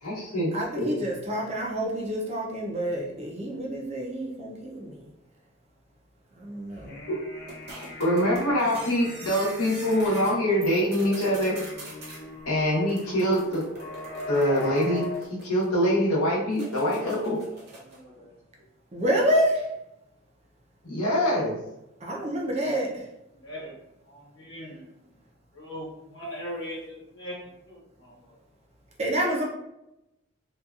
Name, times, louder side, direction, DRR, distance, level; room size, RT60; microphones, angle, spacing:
voice 1, 0.0-1.0 8.0-11.5 12.5-13.6 14.3-17.4 20.8-21.5, equal, 80° left, -5 dB, 0.9 m, -24 dB
voice 2, 0.5-5.0 6.4-7.0 18.9-19.6 22.0-22.9 29.0-29.4, equal, 30° right, -1 dB, 0.4 m, -28 dB
sound 1, 6.7-15.2, left 1 dB, 35° left, 0.8 m, -41 dB
sound 2, 7.5-10.3 10.6-12.2 12.9-15.9 16.5-18.0, right 1 dB, 50° right, 0.8 m, -44 dB
voice 3, 17.8-18.3 22.3-22.8 23.3-23.7 24.0-24.9 25.5-27.4 27.7-28.4, equal, 55° left, -6 dB, 1.1 m, -40 dB
2.7 x 2.2 x 2.3 m, 0.86 s
head